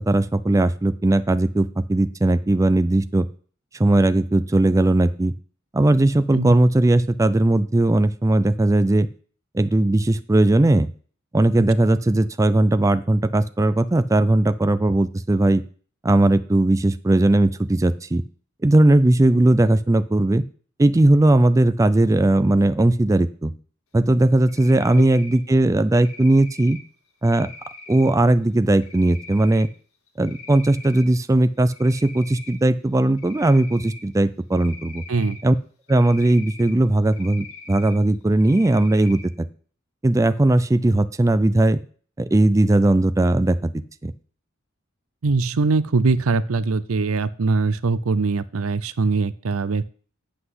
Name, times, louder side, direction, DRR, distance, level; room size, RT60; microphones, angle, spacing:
voice 1, 0.0-3.3 3.8-5.3 5.7-9.1 9.5-10.9 11.3-15.6 16.0-18.2 18.6-20.4 20.8-23.5 23.9-26.8 27.2-27.5 27.9-29.7 30.2-35.0 35.4-35.5 35.9-39.5 40.0-41.8 42.2-43.7 44.0-44.1, right 1 dB, 15° right, 11 dB, 0.4 m, -18 dB
Cricket, 24.5-25.4 25.9-26.8 27.2-28.1 28.8-29.6 30.1-31.0 31.4-32.6 33.2-34.0 34.5-35.4 35.9-36.7 37.1-37.9 38.4-39.2, left 3 dB, 80° left, 1.9 m, -42 dB
voice 2, 45.2-49.9, right 3 dB, 85° right, 16 dB, 0.6 m, -22 dB
8.1 x 5.7 x 7.9 m, 0.44 s
head